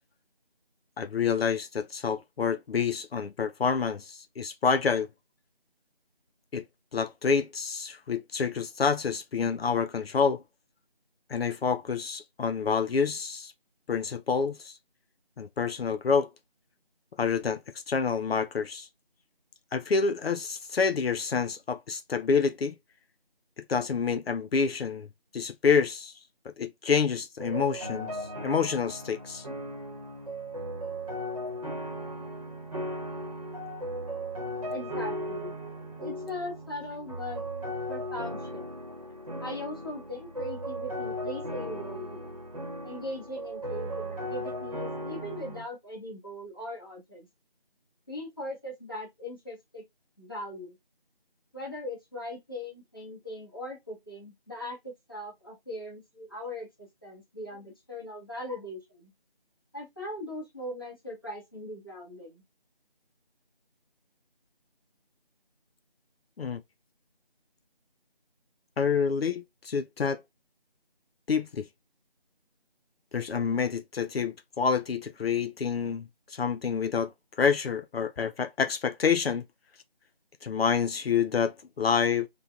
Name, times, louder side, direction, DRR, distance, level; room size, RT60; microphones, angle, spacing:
voice 1, 1.0-5.1 6.5-6.6 6.9-10.4 11.3-13.5 13.9-14.8 15.4-16.3 17.2-17.6 17.9-18.9 19.7-22.7 23.6-25.1 25.3-26.1 26.5-29.5 66.4-66.6 68.8-70.2 71.3-71.7 73.1-77.1 77.4-79.4 80.4-82.3, left 6 dB, 80° left, 0.4 m, -28 dB
sound 1, 27.4-45.6, equal, 35° right, 0.9 m, -37 dB
voice 2, 34.7-35.5 36.0-37.4 37.9-38.7 39.4-42.4 42.8-47.3 48.1-49.8 50.2-50.8 51.5-59.1 59.7-62.4, left 1 dB, 25° left, 0.8 m, -39 dB
3.3 x 2.2 x 2.3 m
figure-of-eight pair, 170°, 30 cm